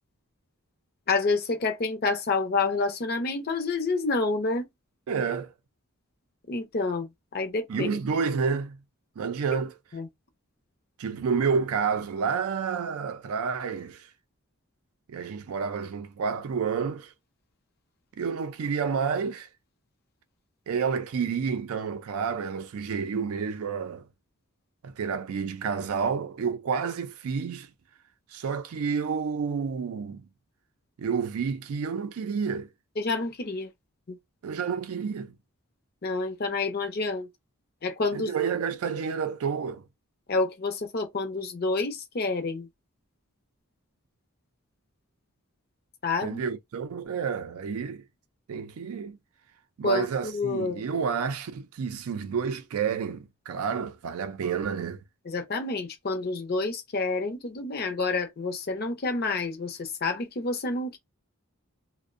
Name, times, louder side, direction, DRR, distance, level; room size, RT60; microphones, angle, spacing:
voice 1, 1.1-4.7 6.5-8.0 9.9-10.1 33.0-33.7 34.1-34.2 36.0-37.3 37.8-38.3 40.3-42.7 46.0-46.4 48.5-48.6 49.8-50.9 55.3-61.0, left 3 dB, 45° left, 0.6 m, -28 dB
voice 2, 5.1-5.5 7.7-8.8 9.2-9.7 11.0-14.1 15.1-17.1 18.2-19.5 20.7-24.1 24.8-27.7 28.3-30.3 31.0-32.7 34.4-35.3 38.1-39.8 46.2-48.0 48.5-49.2 49.8-55.0, right 6 dB, 75° right, 0.4 m, -29 dB
2.5 x 2.1 x 2.4 m
head